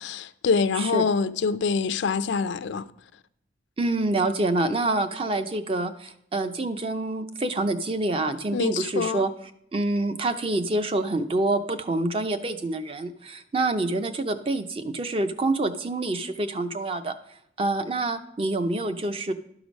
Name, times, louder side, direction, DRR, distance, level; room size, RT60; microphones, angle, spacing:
voice 1, 0.0-2.9 8.5-9.2, left 5 dB, 70° left, 0.4 m, -25 dB
voice 2, 3.8-9.3 9.7-17.2 17.6-19.3, right 2 dB, 30° right, 0.5 m, -27 dB
12.0 x 4.9 x 5.1 m
head